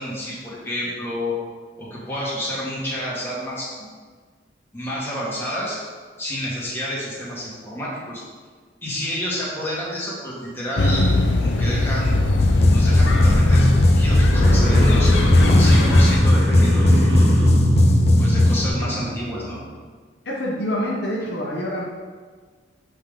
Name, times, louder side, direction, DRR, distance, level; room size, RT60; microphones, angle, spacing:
voice 1, 0.0-1.3 1.8-3.7 4.7-5.8 6.2-8.2 8.8-11.1 11.4-12.2 12.7-15.1 15.6-17.1 18.2-19.6, equal, 15° left, -8 dB, 1.8 m, -29 dB
sound 1, 10.8-16.2, left 2 dB, 80° left, 0.6 m, -20 dB
sound 2, 12.4-18.7, left 1 dB, 35° left, 0.5 m, -17 dB
sound 3, 14.3-19.6, equal, 90° right, 1.4 m, -24 dB
voice 2, 20.2-21.8, equal, 65° left, -4 dB, 1.0 m, -26 dB
7.8 x 3.8 x 3.6 m, 1.5 s
head